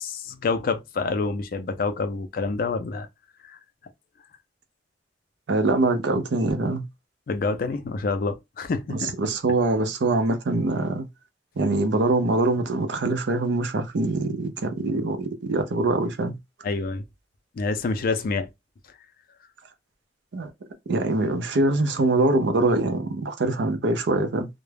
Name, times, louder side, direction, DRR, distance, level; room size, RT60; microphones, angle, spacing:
voice 1, 0.0-3.1 3.5-3.6 7.3-9.3 16.6-17.0 17.6-18.5, left 4 dB, 55° left, 0.4 m, -27 dB
voice 2, 5.5-6.9 8.9-11.1 11.6-16.4 20.3-20.5 20.9-24.5, right 2 dB, 80° right, 0.5 m, -23 dB
2.2 x 2.0 x 3.2 m
head